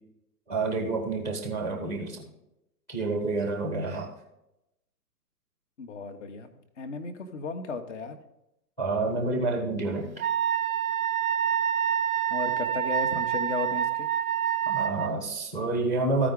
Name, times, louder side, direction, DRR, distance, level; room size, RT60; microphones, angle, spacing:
voice 1, 0.5-2.2 2.9-4.1 8.8-10.3 14.7-16.3, right 3 dB, 5° left, 3 dB, 0.7 m, -28 dB
voice 2, 5.8-6.5 6.8-8.2 12.3-14.1, left 4 dB, 45° left, 8 dB, 1.1 m, -35 dB
Wind instrument woodwind instrument, 10.2-15.1, right 9 dB, 60° right, 0.6 m, -27 dB
14.0 x 4.9 x 3.7 m, 0.87 s
figure-of-eight pair, 125°, 49 cm